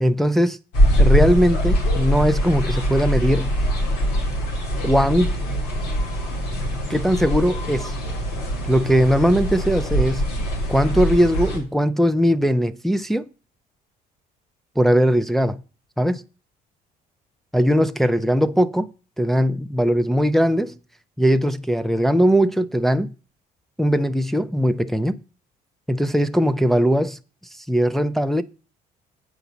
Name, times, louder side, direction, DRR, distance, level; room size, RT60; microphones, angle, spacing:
voice 1, 0.0-0.6 1.0-3.5 4.8-5.3 6.9-7.9 8.7-10.2 10.7-13.3 14.8-15.6 16.0-16.2 17.5-18.9 19.2-20.8 21.2-23.1 23.8-25.2 25.9-27.2 27.6-28.4, equal, ahead, 0.4 m, -19 dB
sound 1, 0.7-11.6, equal, 85° left, 3.1 m, -22 dB
8.0 x 5.0 x 6.9 m
cardioid pair, 110°, 17 cm